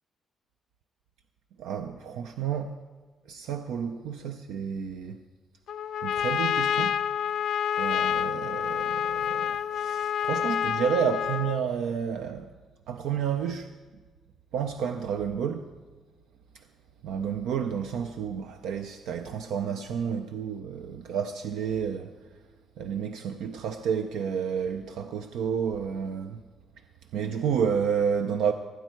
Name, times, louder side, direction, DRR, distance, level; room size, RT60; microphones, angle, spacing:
voice 1, 1.6-2.7 3.3-5.2 6.0-7.0 7.8-12.5 12.9-13.7 14.5-15.7 16.5-16.6 17.0-22.1 22.8-26.4 27.1-28.5, right 7 dB, 85° right, 0.5 m, -30 dB
Trumpet, 5.7-11.7, left 9 dB, 70° left, 0.4 m, -28 dB
16.5 x 9.3 x 4.6 m
cardioid pair, 90°, 0 cm